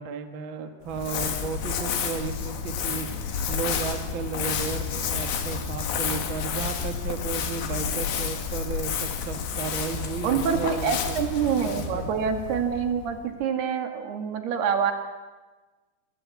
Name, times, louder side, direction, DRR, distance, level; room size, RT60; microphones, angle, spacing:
voice 1, 0.0-3.1 3.5-11.2 11.6-12.3, right 6 dB, 75° right, 7 dB, 1.1 m, -34 dB
Crumpling crinkling, 0.9-13.3, left 7 dB, 65° left, 4.2 m, -30 dB
voice 2, 10.2-14.9, right 7 dB, 60° right, 6 dB, 3.8 m, -26 dB
24.5 x 24.5 x 8.6 m, 1.3 s
omnidirectional pair, 5.5 m